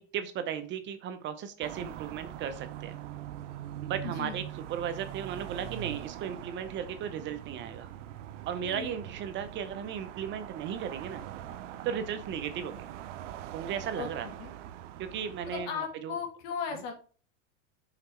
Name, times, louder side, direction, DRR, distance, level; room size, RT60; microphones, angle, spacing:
voice 1, 0.0-3.0 3.8-7.9 8.5-11.2 11.8-12.9 13.5-14.3 15.0-16.2, right 8 dB, 30° right, 9 dB, 0.7 m, -36 dB
sound 1, 1.6-15.7, right 11 dB, 80° right, 0.7 m, -42 dB
voice 2, 4.0-4.4 8.6-9.0 14.0-14.5 15.5-16.9, left 6 dB, 55° left, 4 dB, 2.3 m, -37 dB
5.9 x 3.9 x 4.4 m, 0.39 s
supercardioid pair, 135°, 36 cm